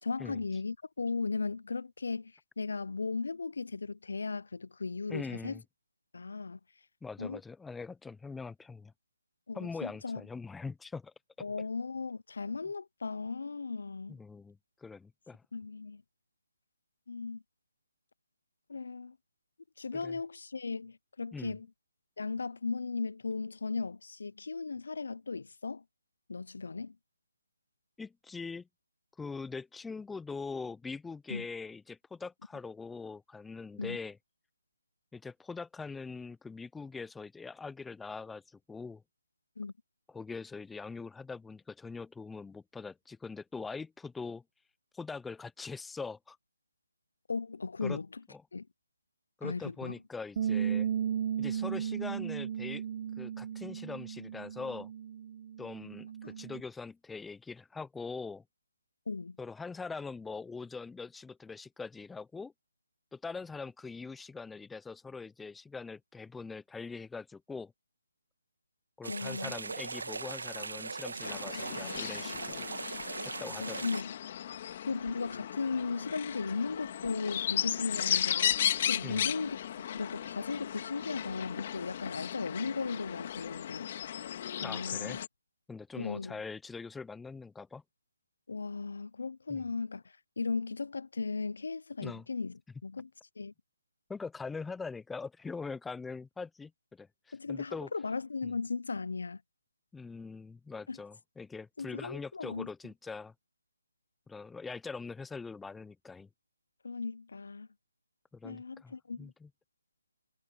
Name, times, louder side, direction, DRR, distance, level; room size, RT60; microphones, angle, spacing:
voice 1, 0.0-5.6 6.1-6.6 7.2-7.4 9.5-10.2 11.4-14.2 15.5-16.0 17.1-17.4 18.7-19.2 19.8-21.7 22.2-25.8 26.3-27.0 31.3-31.5 33.8-34.0 39.6-39.7 47.3-48.2 48.5-48.7 49.4-49.9 56.2-56.3 59.1-59.4 69.1-69.5 73.6-74.1 74.8-78.5 78.9-79.6 79.9-83.9 84.6-85.2 85.9-86.4 88.5-90.0 90.4-93.1 93.4-93.5 97.3-99.4 100.9-101.0 101.8-102.7 106.8-107.7 108.4-109.3, left 4 dB, 65° left, 0.6 m, -36 dB
voice 2, 5.1-5.6 7.0-8.9 9.5-11.1 14.1-15.4 19.9-20.2 21.3-21.6 28.0-28.7 29.2-34.2 35.1-39.0 40.1-44.4 44.9-46.4 47.8-48.0 48.3-48.4 49.4-50.9 51.4-52.8 53.2-54.9 55.6-58.4 59.4-62.5 63.1-67.7 69.0-72.7 73.2-73.9 79.0-79.3 84.6-85.2 85.7-87.8 89.5-89.6 92.0-92.2 94.1-97.9 98.4-98.6 99.9-103.3 104.3-106.3 108.3-109.5, left 4 dB, 5° left, 0.5 m, -42 dB
Bass guitar, 50.4-56.6, right 9 dB, 35° right, 1.1 m, -35 dB
sound 1, 69.0-74.0, right 4 dB, 75° right, 1.6 m, -39 dB
sound 2, 71.2-85.3, left 10 dB, 35° left, 2.1 m, -35 dB
figure-of-eight pair, 160°, 0 cm